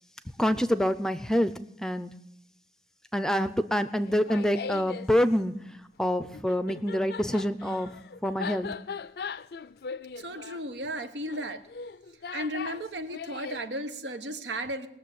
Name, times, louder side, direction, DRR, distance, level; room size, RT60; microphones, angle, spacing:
voice 1, 0.4-1.5 1.8-2.1 3.1-5.5 6.0-7.9 8.2-8.7, equal, 5° left, 13 dB, 0.5 m, -26 dB
Laughter, 4.0-5.1 6.3-13.6, left 5 dB, 60° left, 0.4 m, -39 dB
voice 2, 10.2-11.6 12.3-14.9, right 1 dB, 90° right, 9 dB, 1.2 m, -34 dB
20.0 x 7.0 x 8.5 m, 0.83 s
head